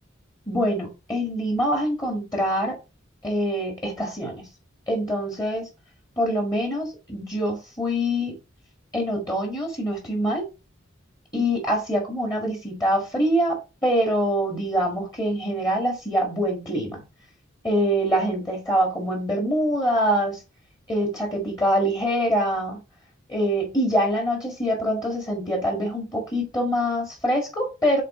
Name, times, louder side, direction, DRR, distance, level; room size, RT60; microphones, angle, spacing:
voice 1, 0.5-2.8 3.2-4.4 4.9-5.7 6.2-8.3 8.9-10.4 11.3-17.0 17.6-20.4 20.9-22.8 23.3-28.0, equal, 20° left, 0 dB, 1.8 m, -24 dB
7.4 x 4.1 x 3.7 m, 0.29 s
head